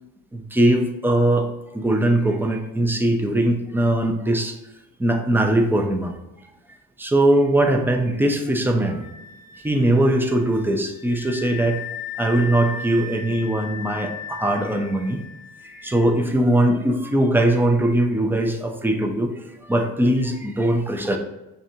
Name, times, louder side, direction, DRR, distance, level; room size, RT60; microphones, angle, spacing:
voice 1, 0.5-1.5 1.7-4.5 5.0-6.1 7.0-9.0 9.6-11.8 12.2-15.2 15.8-19.3 19.7-21.2, right 1 dB, 5° right, 4 dB, 0.5 m, -20 dB
Wind instrument woodwind instrument, 8.8-16.2, left 6 dB, 70° left, 0.6 m, -37 dB
5.8 x 2.5 x 2.7 m, 0.98 s
cardioid pair, 85°, 35 cm